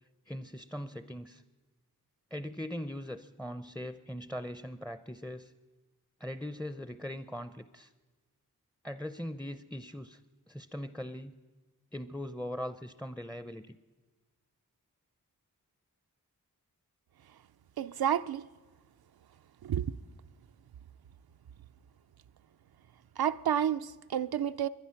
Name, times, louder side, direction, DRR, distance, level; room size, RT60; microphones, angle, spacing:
voice 1, 0.3-1.4 2.3-5.5 6.2-7.9 8.8-10.2 10.5-11.3 11.9-13.8, equal, 5° left, 0.5 m, -40 dB
voice 2, 17.8-18.5 19.6-19.9 23.2-24.7, right 9 dB, 85° right, 0.5 m, -30 dB
22.0 x 11.0 x 5.8 m
wide cardioid pair, 45°, 36 cm